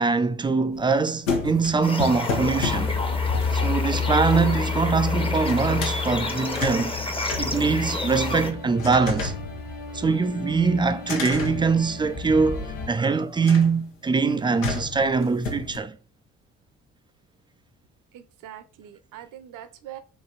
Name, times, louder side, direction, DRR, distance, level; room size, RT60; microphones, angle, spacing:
voice 1, 0.0-2.9 3.5-6.9 7.4-9.3 9.9-16.0, right 4 dB, 15° right, 0.3 m, -23 dB
sound 1, 0.7-5.1 5.4-6.0 6.4-8.3 8.8-10.3 11.0-12.5 13.4-13.9 14.6-15.8, left 4 dB, 80° left, 0.8 m, -33 dB
sound 2, 1.8-8.5, left 2 dB, 15° left, 0.8 m, -31 dB
sound 3, 2.3-12.9, left 4 dB, 45° left, 1.6 m, -30 dB
voice 2, 18.1-20.0, right 11 dB, 50° right, 0.7 m, -43 dB
4.0 x 3.1 x 3.8 m
figure-of-eight pair, 50°, 40 cm